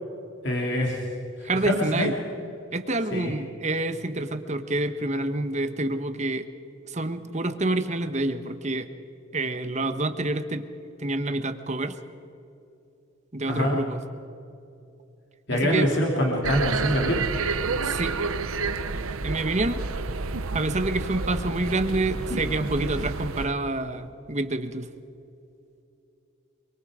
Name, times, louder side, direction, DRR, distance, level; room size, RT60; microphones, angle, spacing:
voice 1, 0.4-1.0 1.4-2.1 3.1-3.3 13.5-13.8 15.5-17.3 22.9-23.1, equal, 55° left, -1 dB, 2.8 m, -25 dB
voice 2, 1.4-2.1 2.7-6.5 6.8-8.9 9.3-10.6 11.0-12.0 13.3-14.0 15.5-15.9 17.8-18.2 19.2-19.8 20.5-24.9, right 2 dB, 35° right, 9 dB, 1.1 m, -27 dB
sound 1, 16.4-23.5, right 4 dB, 85° right, 0.9 m, -30 dB
26.5 x 24.0 x 5.0 m, 2.7 s
head